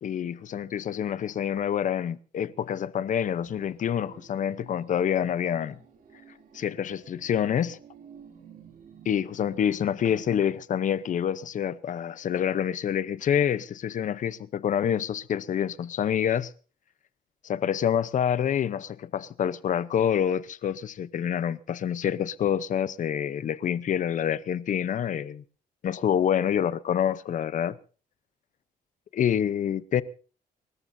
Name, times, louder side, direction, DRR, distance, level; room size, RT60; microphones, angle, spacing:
voice 1, 0.0-5.8 6.5-7.8 9.0-16.5 17.4-25.4 25.8-27.8 29.1-30.0, left 9 dB, 55° left, 0.8 m, -27 dB
sound 1, 3.1-10.4, right 7 dB, 65° right, 3.0 m, -53 dB
30.0 x 14.0 x 2.7 m
cardioid pair, 125°, 16 cm